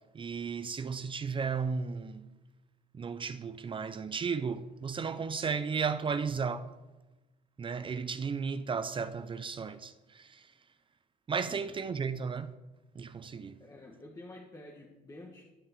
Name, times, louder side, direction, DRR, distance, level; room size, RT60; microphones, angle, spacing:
voice 1, 0.1-2.3 2.9-6.7 7.6-10.5 11.3-12.5 12.9-13.6, right 5 dB, 30° right, 0.6 m, -34 dB
voice 2, 13.6-15.4, left 1 dB, 20° left, 1.5 m, -49 dB
12.0 x 6.1 x 7.6 m
cardioid pair, 110°, 17 cm